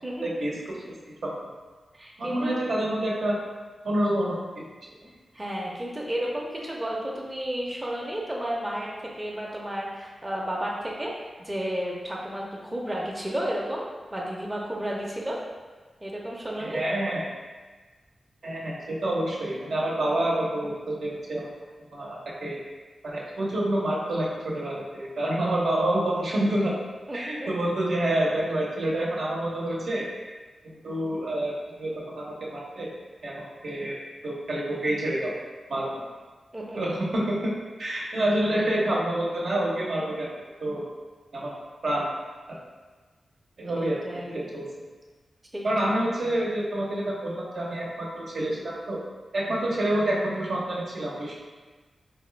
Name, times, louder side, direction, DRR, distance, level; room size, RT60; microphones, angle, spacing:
voice 1, 0.2-0.8 1.1-1.3 2.2-3.4 3.8-4.7 16.6-17.3 18.4-21.5 21.8-22.6 23.0-26.7 27.1-30.1 30.6-32.9 33.2-34.0 34.2-35.3 35.7-36.0 36.7-37.5 37.8-40.3 40.6-40.9 41.3-41.5 41.8-42.1 43.6-44.7 45.6-49.0 49.3-51.4, right 1 dB, 75° right, -4 dB, 0.8 m, -28 dB
voice 2, 1.9-2.6 5.3-8.9 9.2-11.1 11.5-13.8 14.1-15.4 16.0-16.8 27.1-27.5 36.5-36.9 43.8-44.5 45.5-45.7, equal, 20° right, -3 dB, 0.6 m, -32 dB
4.0 x 2.2 x 3.2 m, 1.4 s
cardioid pair, 70°, 0 cm